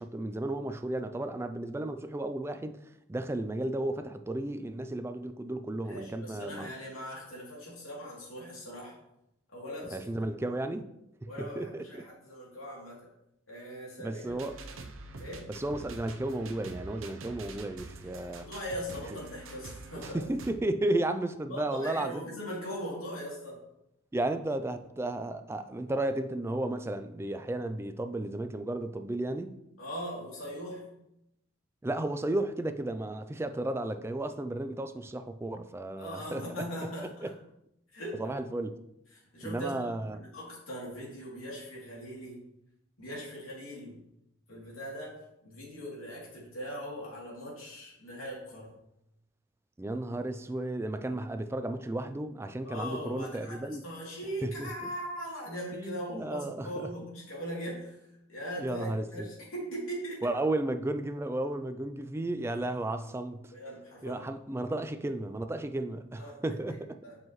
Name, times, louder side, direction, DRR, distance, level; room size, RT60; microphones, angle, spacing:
voice 1, 0.0-2.8 3.1-6.7 9.9-10.9 11.2-12.0 14.0-14.6 15.5-18.5 19.1-19.2 20.0-22.3 24.1-29.6 31.8-36.6 37.0-37.3 38.2-38.8 39.4-40.2 49.8-53.8 54.4-54.7 55.7-56.9 58.6-59.3 60.2-63.5 64.0-67.0, right 1 dB, 10° right, 0.3 m, -33 dB
voice 2, 5.8-8.9 9.5-10.1 11.3-13.0 13.5-14.4 15.2-15.5 18.3-20.2 21.5-23.6 29.8-30.8 36.0-37.3 37.9-38.3 39.1-39.8 40.2-42.4 43.0-44.0 44.5-45.2 45.4-48.7 52.6-58.0 58.3-60.3 63.5-64.3 64.6-64.7 66.2-66.4 67.0-67.2, equal, 90° left, 2.8 m, -40 dB
sound 1, 14.3-20.5, right 2 dB, 80° right, 0.7 m, -46 dB
7.8 x 5.6 x 3.1 m
head